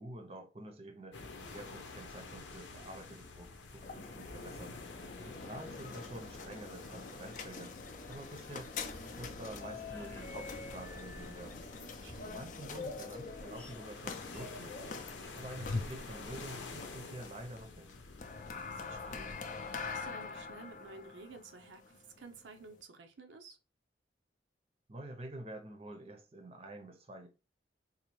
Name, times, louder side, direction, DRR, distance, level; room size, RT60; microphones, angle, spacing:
voice 1, 0.0-8.7 9.2-11.6 12.2-15.0 15.4-17.9 24.9-27.3, right 1 dB, 30° right, 0.6 m, -48 dB
sound 1, 1.1-20.1, left 3 dB, 85° left, 0.7 m, -50 dB
sound 2, 3.7-22.8, left 4 dB, 45° left, 0.4 m, -45 dB
sound 3, 7.5-20.8, left 1 dB, 10° left, 0.7 m, -56 dB
voice 2, 11.8-12.5 18.6-23.6, right 3 dB, 85° right, 0.6 m, -53 dB
3.9 x 2.5 x 3.0 m
head